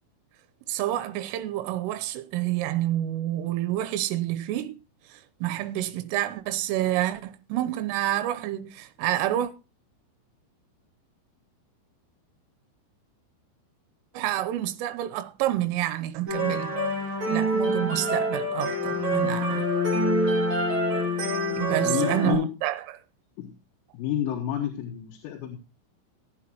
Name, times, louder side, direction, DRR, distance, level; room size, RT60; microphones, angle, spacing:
voice 1, 0.7-4.8 5.4-9.5 14.2-16.7 17.3-19.7 21.6-23.0, right 13 dB, 85° right, 3.3 m, -28 dB
sound 1, 16.3-22.3, equal, 35° right, 5.1 m, -26 dB
voice 2, 21.8-22.5 23.4-23.5 23.9-25.6, left 10 dB, 90° left, 4.1 m, -29 dB
17.5 x 8.6 x 3.0 m
omnidirectional pair, 5.8 m